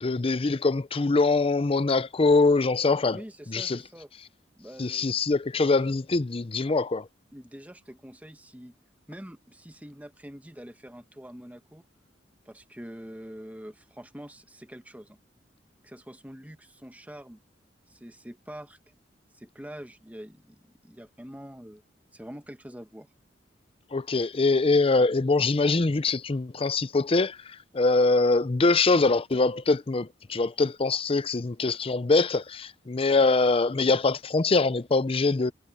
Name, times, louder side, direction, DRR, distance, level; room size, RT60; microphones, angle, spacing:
voice 1, 0.0-3.2 3.5-3.8 4.8-7.1 23.9-35.5, left 3 dB, 30° left, 0.6 m, -23 dB
voice 2, 3.1-4.1 4.6-5.2 5.5-5.9 7.3-8.7 9.1-11.8 12.4-15.2 15.8-17.4 17.9-18.8 19.3-21.8 22.1-23.1, equal, 10° right, 1.2 m, -45 dB
head